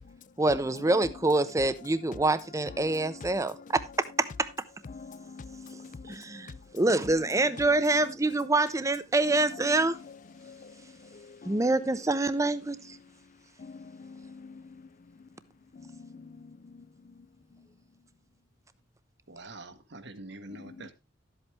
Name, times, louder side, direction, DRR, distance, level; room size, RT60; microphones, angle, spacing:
voice 1, 0.4-4.5 6.1-10.0 11.5-13.0, right 2 dB, 15° right, 0.6 m, -26 dB
voice 2, 4.9-6.2 10.5-10.6 11.4-11.6 13.6-13.7 14.0-14.6, left 4 dB, 40° left, 0.4 m, -45 dB
voice 3, 19.3-20.9, right 2 dB, 65° right, 1.2 m, -45 dB
12.0 x 8.1 x 3.2 m
head